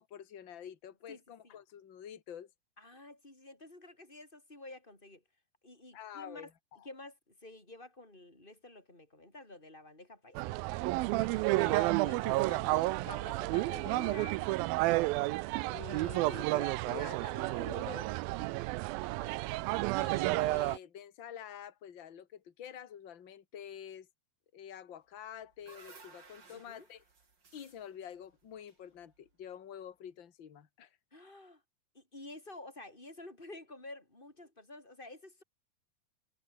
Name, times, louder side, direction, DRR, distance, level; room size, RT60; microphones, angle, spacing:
voice 1, 0.0-2.5 5.9-6.5 11.1-14.5 15.7-18.2 20.0-24.1 24.5-27.0 27.5-31.0, left 9 dB, 40° left, 2.2 m, -48 dB
voice 2, 2.8-5.2 5.6-6.5 6.8-10.4 14.7-15.1 19.0-19.4 26.5-26.9 31.1-31.6 31.9-35.4, left 2 dB, 10° left, 7.9 m, -51 dB
sound 1, 10.4-20.8, right 20 dB, 80° right, 2.3 m, -31 dB
sound 2, 25.2-29.4, right 4 dB, 30° right, 3.9 m, -58 dB
omnidirectional pair, 4.5 m